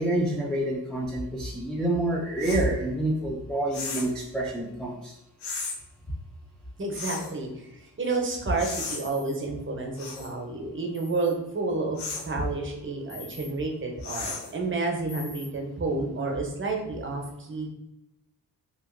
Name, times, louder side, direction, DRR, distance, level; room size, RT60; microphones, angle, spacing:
voice 1, 0.0-5.2, right 1 dB, ahead, -3 dB, 0.3 m, -27 dB
sound 1, 2.4-2.7 3.7-4.2 5.4-5.8 6.9-7.3 8.6-9.0 10.0-10.3 12.0-12.3 14.0-14.6, left 4 dB, 80° left, 0.6 m, -35 dB
voice 2, 6.8-12.0 12.2-17.7, right 3 dB, 30° right, 1 dB, 0.7 m, -30 dB
sound 2, 9.0-9.3 10.9-11.3 13.1-13.5 15.1-15.5, left 3 dB, 40° left, 1.0 m, -44 dB
2.8 x 2.5 x 2.5 m, 0.89 s
cardioid pair, 70°, 39 cm